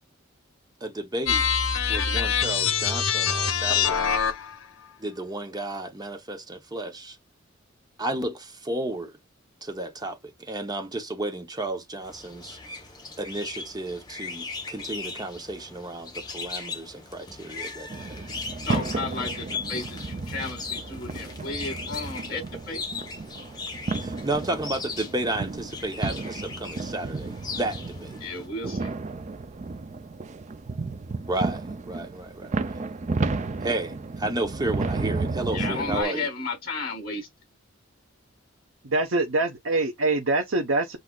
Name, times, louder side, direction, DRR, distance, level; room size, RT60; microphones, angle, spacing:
voice 1, 0.8-1.5 1.9-4.1 5.0-7.2 8.0-9.1 9.6-12.6 13.2-18.2 24.0-28.2 31.3-32.8 33.6-36.3, right 2 dB, 20° right, 1.0 m, -32 dB
sound 1, 1.3-4.6, left 7 dB, 85° left, 1.0 m, -24 dB
sound 2, 12.0-28.5, left 4 dB, 20° left, 1.1 m, -38 dB
sound 3, 17.9-36.0, right 3 dB, 35° right, 0.5 m, -33 dB
voice 2, 18.3-22.8 28.2-28.9 35.5-37.3, left 3 dB, 50° left, 3.7 m, -33 dB
voice 3, 38.8-41.0, right 2 dB, 75° right, 1.0 m, -24 dB
8.0 x 2.7 x 2.4 m
head